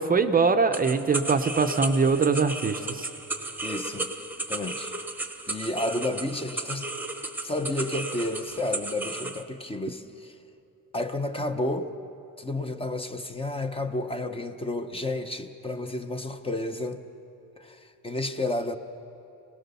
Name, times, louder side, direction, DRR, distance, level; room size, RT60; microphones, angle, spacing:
voice 1, 0.0-3.1, right 4 dB, 25° right, 8 dB, 0.7 m, -23 dB
sound 1, 0.7-9.4, right 2 dB, 5° right, 1.0 m, -34 dB
voice 2, 3.6-4.1 4.5-4.9 5.5-6.9 7.4-10.3 10.9-11.9 12.4-17.0 17.6-18.8, left 2 dB, 15° left, 7 dB, 0.8 m, -31 dB
25.5 x 18.5 x 6.9 m, 2.8 s
cardioid pair, 155°, 33 cm